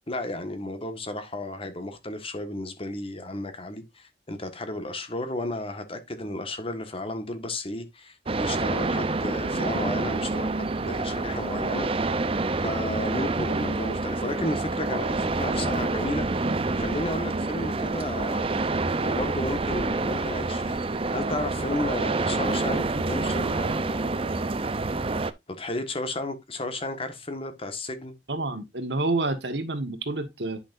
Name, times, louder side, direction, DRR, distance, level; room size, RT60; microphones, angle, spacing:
voice 1, 0.1-11.9 12.6-16.5 16.7-18.5 19.0-24.6 25.6-28.1, left 1 dB, 35° left, 1.7 m, -33 dB
sound 1, 8.3-25.3, right 3 dB, 30° right, 0.6 m, -27 dB
voice 2, 28.3-30.6, right 2 dB, 80° right, 1.7 m, -28 dB
10.0 x 6.0 x 2.6 m
head